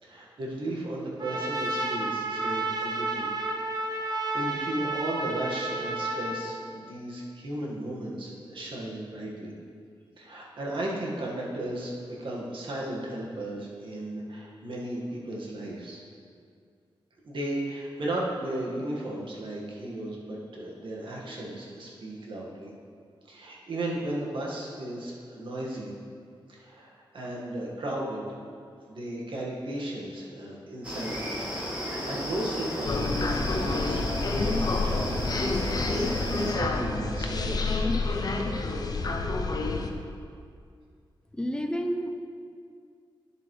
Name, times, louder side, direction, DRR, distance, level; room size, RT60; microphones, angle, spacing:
voice 1, 0.0-3.3 3.8-9.5 10.2-16.0 17.2-22.7 23.3-25.9 26.5-28.2 28.9-31.4 31.7-34.0 34.4-36.1 36.6-37.8, right 1 dB, 65° right, -3 dB, 1.8 m, -35 dB
Trumpet, 1.2-6.5, right 2 dB, 45° right, 0.7 m, -31 dB
sound 1, 30.8-36.5, equal, 10° right, 1.9 m, -34 dB
sound 2, 32.9-39.9, left 3 dB, 45° left, 0.6 m, -28 dB
voice 2, 41.3-42.1, equal, 10° left, 4 dB, 0.5 m, -29 dB
10.5 x 7.9 x 3.3 m, 2.3 s
wide cardioid pair, 165°, 9 cm